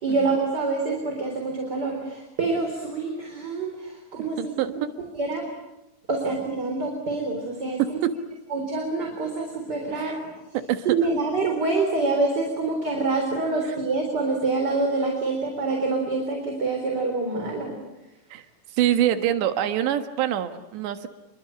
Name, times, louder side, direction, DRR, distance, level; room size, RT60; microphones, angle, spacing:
voice 1, 0.0-4.8 5.2-5.5 6.1-8.0 8.5-10.3 10.9-17.8, right 3 dB, 25° right, 2 dB, 3.9 m, -26 dB
voice 2, 4.4-4.7 7.8-8.1 9.9-10.1 10.7-10.9 18.3-18.5 18.7-21.1, right 11 dB, 70° right, 8 dB, 3.6 m, -24 dB
28.5 x 23.5 x 8.8 m, 0.97 s
omnidirectional pair, 5.4 m